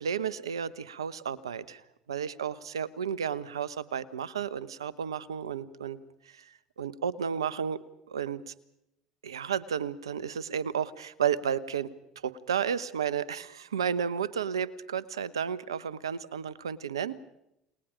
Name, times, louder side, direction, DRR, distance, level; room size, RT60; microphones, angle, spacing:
voice 1, 0.0-1.8 2.1-6.0 6.3-7.8 8.1-8.5 9.2-11.9 12.2-17.1, right 8 dB, 85° right, 18 dB, 1.0 m, -32 dB
30.0 x 20.5 x 5.1 m, 0.83 s
hypercardioid pair, 70°, 3 cm